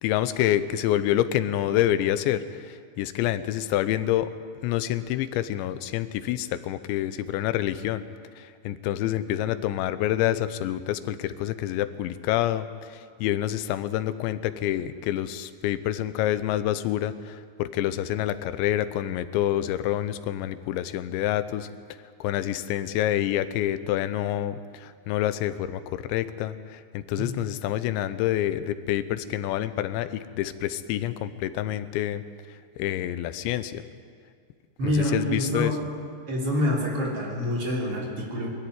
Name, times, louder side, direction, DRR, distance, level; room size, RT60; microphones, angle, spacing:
voice 1, 0.0-4.3 4.6-8.0 8.4-21.7 22.2-32.2 32.8-33.8 34.8-35.7, left 12 dB, 90° left, 12 dB, 3.1 m, -27 dB
voice 2, 34.8-35.7 36.3-38.5, left 1 dB, 35° right, -3 dB, 3.8 m, -26 dB
22.0 x 13.5 x 9.6 m, 2.1 s
omnidirectional pair, 5.1 m